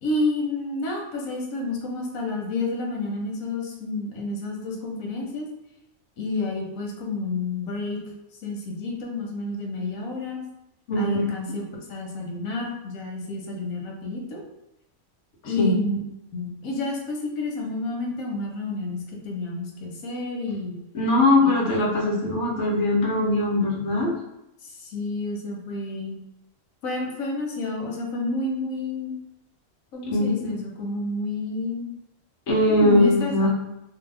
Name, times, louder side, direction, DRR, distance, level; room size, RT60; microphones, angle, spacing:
voice 1, 0.0-5.5 6.2-8.0 8.4-10.4 10.9-11.6 11.9-14.4 15.4-16.0 16.3-20.8 21.4-21.5 24.6-26.1 26.8-29.2 29.9-31.9 32.6-33.5, left 2 dB, 85° left, -1 dB, 1.1 m, -30 dB
voice 2, 10.9-11.2 15.6-15.8 20.9-24.1 30.1-30.5 32.5-33.5, left 1 dB, 65° left, -2 dB, 1.0 m, -21 dB
2.7 x 2.1 x 3.2 m, 0.86 s
omnidirectional pair, 1.4 m